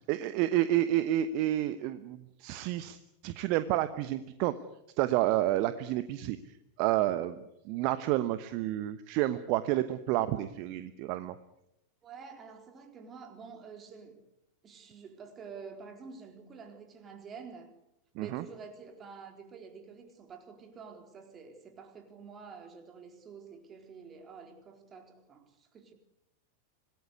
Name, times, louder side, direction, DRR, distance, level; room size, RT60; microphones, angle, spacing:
voice 1, 0.1-3.0 3.2-4.5 5.0-6.4 6.8-11.3 18.2-18.4, right 14 dB, 45° right, 12 dB, 1.1 m, -30 dB
voice 2, 12.0-14.2 14.6-17.7 18.2-25.9, right 5 dB, 25° right, 5 dB, 4.2 m, -48 dB
26.0 x 19.5 x 8.3 m, 0.86 s
figure-of-eight pair, 90°, 0 cm